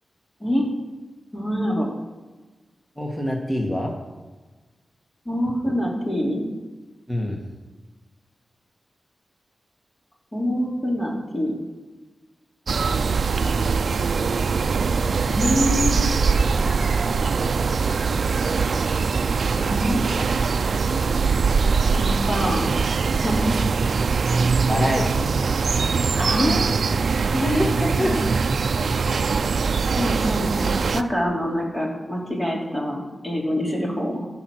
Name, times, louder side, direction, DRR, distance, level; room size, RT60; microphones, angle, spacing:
voice 1, 1.3-1.9 5.2-6.4 10.3-11.5 15.3-16.1 19.5-20.0 21.9-22.7 23.2-23.5 26.2-27.0 27.3-27.7 28.0-28.3 30.0-34.3, equal, 25° left, -2 dB, 3.2 m, -25 dB
voice 2, 3.0-3.9 7.1-7.4 12.9-13.1 24.7-25.4 27.4-28.1, left 1 dB, 10° left, 1 dB, 1.7 m, -26 dB
sound 1, 12.7-31.0, right 5 dB, 70° right, 0.5 m, -22 dB
14.0 x 6.1 x 6.2 m, 1.2 s
wide cardioid pair, 100°, 0 cm